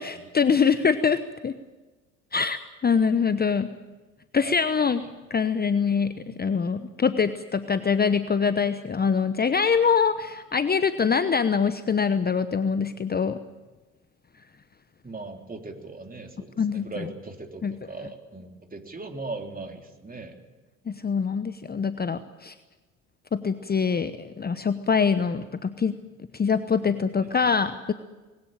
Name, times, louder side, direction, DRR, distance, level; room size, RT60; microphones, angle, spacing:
voice 1, 0.0-1.5 2.3-3.7 4.3-5.0 5.3-13.4 16.6-17.1 17.6-17.8 20.9-22.5 23.3-26.0 26.3-27.9, left 6 dB, 25° left, 12 dB, 1.0 m, -24 dB
voice 2, 4.4-4.8 15.0-20.4 27.2-27.5, right 3 dB, 20° right, 3 dB, 3.4 m, -39 dB
20.5 x 17.5 x 9.1 m, 1.2 s
hypercardioid pair, 60°, 42 cm